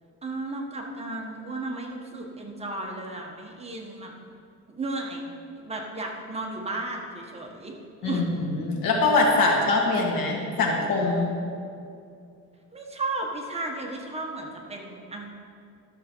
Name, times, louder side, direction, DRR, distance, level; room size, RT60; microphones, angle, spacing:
voice 1, 0.2-4.1 4.7-5.3 5.6-7.7 8.0-8.2 12.7-15.3, right 2 dB, 20° right, 0 dB, 1.1 m, -34 dB
voice 2, 8.0-11.3, left 3 dB, 85° left, 0 dB, 1.9 m, -23 dB
12.0 x 6.6 x 4.4 m, 2.5 s
cardioid pair, 145°, 34 cm